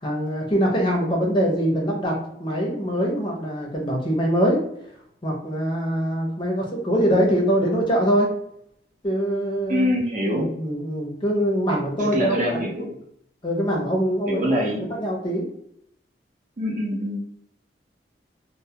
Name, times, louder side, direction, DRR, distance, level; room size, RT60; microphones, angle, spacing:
voice 1, 0.0-4.6 5.2-8.3 9.0-9.9 10.2-12.7 13.4-14.6 14.9-15.4, equal, 25° left, -1 dB, 0.6 m, -23 dB
voice 2, 9.7-10.5 12.0-12.9 14.3-14.9 16.6-17.2, equal, 45° right, -2 dB, 0.6 m, -24 dB
2.2 x 2.1 x 2.7 m, 0.72 s
head